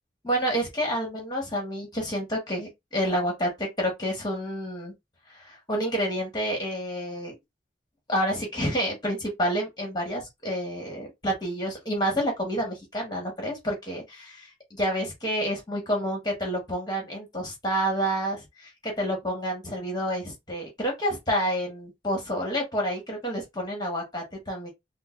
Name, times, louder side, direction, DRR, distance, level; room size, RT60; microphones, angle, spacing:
voice 1, 0.2-4.9 5.3-7.3 8.1-24.7, equal, 25° left, 1.6 m, -29 dB
5.2 x 2.1 x 2.6 m
head